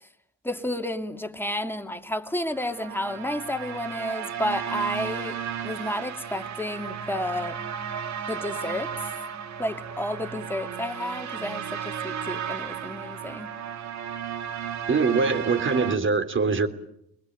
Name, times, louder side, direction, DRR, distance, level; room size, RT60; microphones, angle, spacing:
voice 1, 0.4-5.4 5.6-7.6 8.3-9.1 9.6-13.5, left 1 dB, 5° left, 2.6 m, -31 dB
sound 1, 2.4-16.0, right 8 dB, 65° right, 2.2 m, -34 dB
voice 2, 14.9-16.7, right 4 dB, 40° right, 3.2 m, -23 dB
27.5 x 21.0 x 9.3 m
cardioid pair, 90°, 30 cm